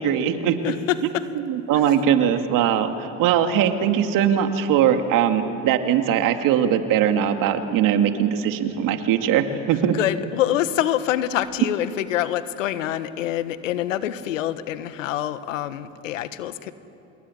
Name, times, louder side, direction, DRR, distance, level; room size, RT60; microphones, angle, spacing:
voice 1, 0.0-0.6 1.3-10.0, right 9 dB, 55° right, 6 dB, 2.4 m, -21 dB
voice 2, 0.6-1.2 1.7-1.8 9.9-16.7, left 12 dB, 85° left, 12 dB, 1.5 m, -26 dB
26.5 x 21.0 x 9.9 m, 3.0 s
hypercardioid pair, 85°, 38 cm